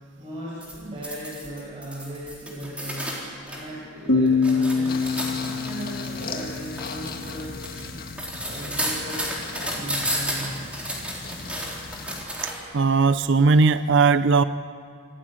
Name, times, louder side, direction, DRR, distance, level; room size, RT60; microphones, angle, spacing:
voice 1, 0.2-3.1 3.4-5.0 5.3-7.6 8.3-9.3 9.7-10.6, right 1 dB, 30° right, -8 dB, 6.4 m, -37 dB
sound 1, 0.6-3.6 4.0-12.7 13.5-13.7, equal, 5° right, 4.0 m, -32 dB
sound 2, 4.1-7.5, left 4 dB, 85° left, 2.6 m, -24 dB
sound 3, 4.9-12.3, left 4 dB, 50° left, 1.7 m, -38 dB
voice 2, 12.7-14.4, right 4 dB, 60° right, 13 dB, 0.6 m, -18 dB
26.5 x 15.5 x 8.8 m, 2.2 s
head